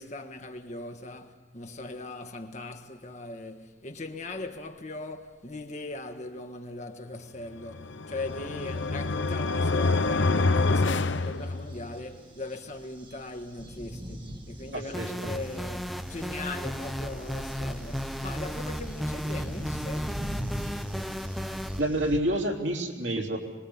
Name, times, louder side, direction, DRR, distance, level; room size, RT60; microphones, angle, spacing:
voice 1, 0.0-20.2, left 2 dB, 40° left, 1.5 m, -40 dB
sound 1, 7.7-12.0, left 3 dB, 80° left, 0.8 m, -26 dB
sound 2, 8.2-22.2, equal, 25° right, 1.7 m, -43 dB
voice 2, 14.7-15.3 21.8-23.4, right 1 dB, 70° right, 3.4 m, -28 dB
sound 3, 14.9-21.8, equal, ahead, 0.7 m, -34 dB
25.5 x 21.0 x 7.3 m
head